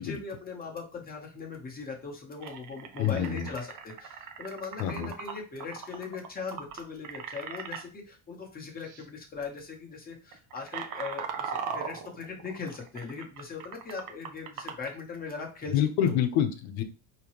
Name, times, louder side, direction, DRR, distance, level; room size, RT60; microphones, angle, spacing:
voice 1, 0.0-16.1, left 4 dB, 20° left, 0 dB, 1.1 m, -40 dB
sound 1, 1.8-1.9 2.4-7.8 8.8-9.0 9.3-9.6 10.1-14.9, right 6 dB, 40° right, 0.7 m, -39 dB
voice 2, 3.0-3.5 4.8-5.1 15.7-16.8, left 10 dB, 75° left, 7 dB, 1.0 m, -27 dB
5.2 x 3.1 x 3.0 m, 0.33 s
cardioid pair, 160°, 49 cm